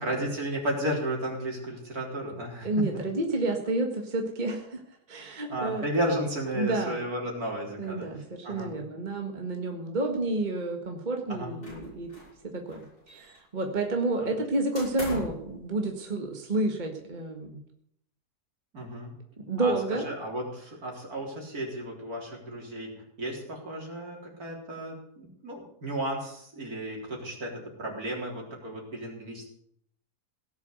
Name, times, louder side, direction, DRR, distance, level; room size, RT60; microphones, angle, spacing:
voice 1, 0.0-2.9 5.5-8.7 11.3-11.5 14.2-14.3 18.7-19.1 19.6-29.5, right 1 dB, 65° right, 0 dB, 4.3 m, -34 dB
voice 2, 2.6-4.8 5.1-5.9 6.6-7.0 7.8-12.1 12.5-17.6 19.5-20.1, right 2 dB, 30° right, 3 dB, 1.8 m, -30 dB
sound 1, 11.6-12.4 12.7-13.6 14.7-15.5, left 2 dB, 75° left, 6.9 m, -40 dB
17.5 x 7.3 x 8.0 m, 0.70 s
omnidirectional pair, 1.7 m